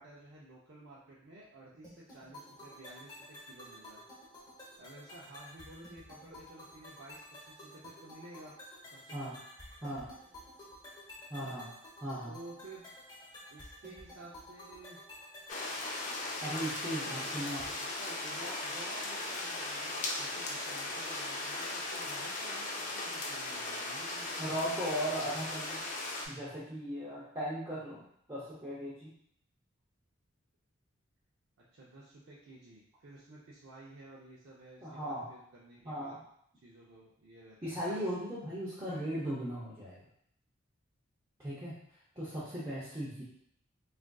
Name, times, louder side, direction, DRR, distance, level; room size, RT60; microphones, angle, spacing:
voice 1, 0.0-4.0 4.8-8.5 8.9-9.4 11.3-11.6 12.3-12.8 13.5-15.0 16.9-24.7 31.6-36.2 36.6-38.0 42.4-42.5, right 2 dB, 60° right, -7 dB, 0.5 m, -53 dB
sound 1, 1.8-17.8, left 1 dB, 20° left, 0.8 m, -52 dB
voice 2, 11.3-11.7 12.0-12.3 16.2-17.6 24.4-25.8 26.3-29.1 34.8-35.3 35.8-36.2 37.6-40.0 41.4-43.2, equal, 20° right, -10 dB, 0.6 m, -38 dB
sound 2, 15.5-26.3, left 2 dB, 35° left, 0.4 m, -38 dB
3.6 x 2.5 x 2.2 m, 0.69 s
head